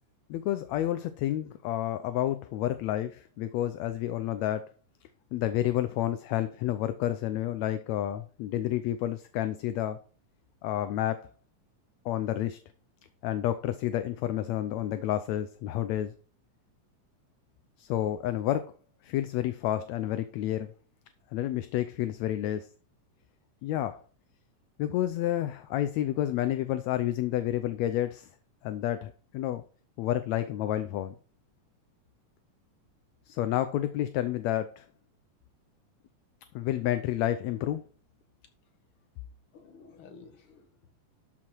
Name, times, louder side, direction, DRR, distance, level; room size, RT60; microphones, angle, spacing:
voice 1, 0.3-4.7 5.3-10.0 10.6-11.2 12.0-12.6 13.2-16.1 17.8-18.7 19.0-20.7 21.3-22.7 23.6-24.0 24.8-28.3 28.6-29.6 30.0-31.1 33.3-34.8 36.5-37.8, left 12 dB, 75° left, 11 dB, 1.7 m, -30 dB
voice 2, 39.5-40.9, left 5 dB, 50° left, 5 dB, 2.3 m, -52 dB
12.5 x 5.8 x 4.5 m, 0.39 s
omnidirectional pair, 3.6 m